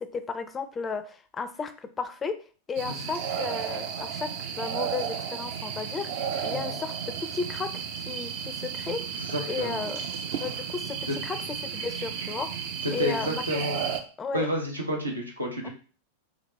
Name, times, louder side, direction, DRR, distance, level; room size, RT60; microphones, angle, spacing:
voice 1, 0.0-2.4 2.7-9.0 9.5-10.0 10.3-12.6 12.9-13.6 14.2-14.5 15.6-15.7, left 5 dB, 20° left, 11 dB, 0.4 m, -34 dB
sound 1, 2.8-14.0, right 7 dB, 50° right, 0.5 m, -33 dB
voice 2, 9.2-9.8 11.1-11.2 12.8-13.9 14.3-15.7, equal, 85° right, 1 dB, 1.0 m, -30 dB
3.9 x 3.0 x 3.2 m, 0.39 s
figure-of-eight pair, 90°, 0 cm